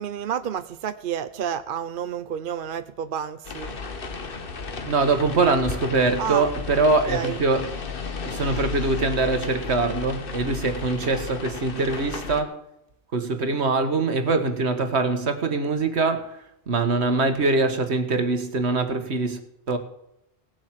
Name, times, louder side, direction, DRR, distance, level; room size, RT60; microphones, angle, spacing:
voice 1, 0.0-3.8 6.2-6.5 7.1-7.4, right 8 dB, 55° right, 0.8 m, -30 dB
sound 1, 3.4-12.4, left 4 dB, 55° left, 1.4 m, -34 dB
voice 2, 4.8-7.8 8.3-12.6 13.1-19.4 19.7-19.8, right 3 dB, 75° right, 1.7 m, -23 dB
18.0 x 7.5 x 7.5 m
omnidirectional pair, 1.1 m